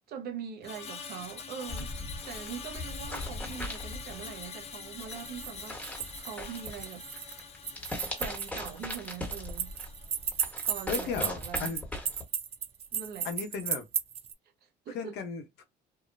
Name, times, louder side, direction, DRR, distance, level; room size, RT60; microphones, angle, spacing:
voice 1, 0.1-1.9 2.2-7.0 8.2-9.7 10.7-11.8 12.9-13.3 14.6-15.1, right 8 dB, 70° right, 0.8 m, -42 dB
Screech, 0.6-11.0 11.3-11.6, left 6 dB, 40° left, 0.6 m, -45 dB
sound 1, 1.7-12.2, left 1 dB, 10° left, 1.4 m, -40 dB
sound 2, 5.0-14.3, right 8 dB, 35° right, 0.4 m, -35 dB
voice 2, 10.9-11.8 13.2-13.9 14.9-15.6, left 6 dB, 75° left, 0.9 m, -35 dB
2.7 x 2.3 x 2.5 m
cardioid pair, 110°, 17 cm